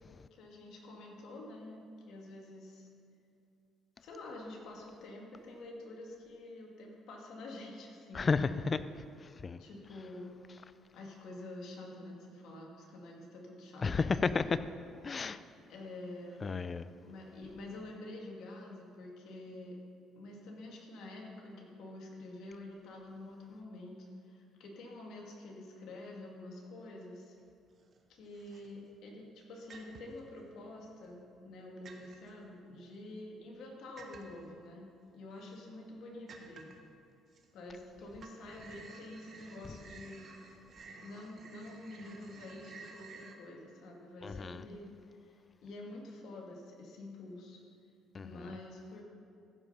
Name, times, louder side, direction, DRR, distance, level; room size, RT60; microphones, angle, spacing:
voice 1, 0.3-2.9 4.0-8.3 9.6-10.4 10.9-14.1 15.7-16.5 17.0-19.8 20.2-27.4 28.1-36.7 37.5-40.2 41.0-44.9 45.2-45.3 45.6-47.6 48.2-49.0, left 2 dB, 70° left, 2.1 m, -48 dB
voice 2, 8.1-8.8 9.4-9.6 13.8-14.6 15.0-15.4 16.4-16.9 44.2-44.7 48.1-48.6, left 4 dB, 35° left, 0.4 m, -32 dB
sound 1, 27.5-28.0 28.3-29.0 29.7-30.3 30.8-31.6 31.8-32.3 34.0-34.5 35.1-35.2 35.6-35.7 36.3-36.9 37.3-37.9 38.1-43.4, right 4 dB, 50° right, 1.2 m, -53 dB
14.5 x 5.4 x 5.6 m
supercardioid pair, 80°, 0 cm